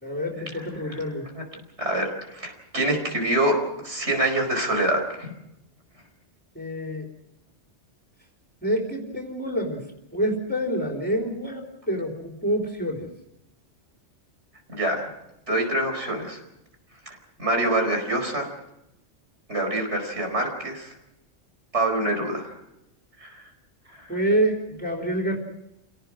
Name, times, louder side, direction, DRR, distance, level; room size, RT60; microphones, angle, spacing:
voice 1, 0.0-1.3 6.6-7.1 8.6-9.8 10.1-13.1 24.1-25.4, right 1 dB, 10° left, 0 dB, 3.7 m, -27 dB
voice 2, 0.5-1.0 1.3-1.4 1.8-3.6 3.8-5.3 14.7-15.1 15.5-16.4 17.1-18.5 19.5-21.0 21.7-22.6 23.2-23.4 23.9-24.2, right 1 dB, 70° right, 4 dB, 5.2 m, -26 dB
29.5 x 18.0 x 6.3 m, 0.89 s
omnidirectional pair, 1.2 m